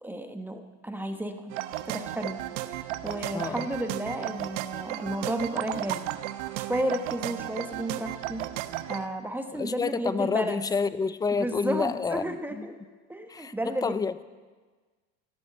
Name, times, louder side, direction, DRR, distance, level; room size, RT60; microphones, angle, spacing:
voice 1, 0.0-1.6 1.8-2.4 2.7-6.1 6.6-8.5 8.9-10.6 11.3-12.8 13.1-13.9, right 1 dB, 5° right, 6 dB, 1.1 m, -32 dB
sound 1, 1.5-9.1, right 14 dB, 80° right, 0.9 m, -34 dB
voice 2, 3.3-3.7 9.5-12.6 13.3-14.2, left 5 dB, 10° left, 15 dB, 0.4 m, -29 dB
14.0 x 12.0 x 8.8 m, 1.4 s
supercardioid pair, 120°, 35 cm